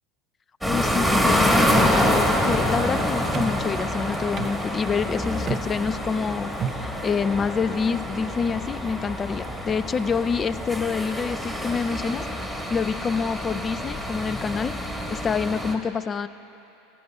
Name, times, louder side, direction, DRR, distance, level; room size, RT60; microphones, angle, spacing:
voice 1, 0.6-16.3, left 5 dB, 25° left, 15 dB, 0.3 m, -27 dB
sound 1, 0.6-15.7, equal, 5° left, 1.4 m, -26 dB
sound 2, 1.3-7.0, right 7 dB, 40° right, 0.5 m, -35 dB
17.0 x 15.5 x 2.3 m, 2.9 s
hypercardioid pair, 85°, 0 cm